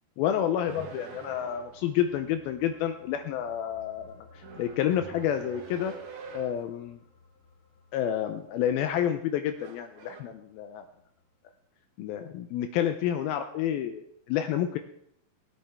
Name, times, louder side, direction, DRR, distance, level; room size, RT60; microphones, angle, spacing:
voice 1, 0.2-5.9 6.3-7.0 7.9-10.8 12.0-14.8, left 10 dB, 80° left, 7 dB, 2.4 m, -29 dB
sound 1, 0.7-1.9 4.3-6.7 8.8-9.2 9.6-10.2, right 5 dB, 60° right, 2.1 m, -46 dB
sound 2, 1.2-11.7 12.0-12.2, left 4 dB, 55° left, 4.1 m, -59 dB
19.5 x 8.7 x 3.5 m, 0.71 s
omnidirectional pair, 4.5 m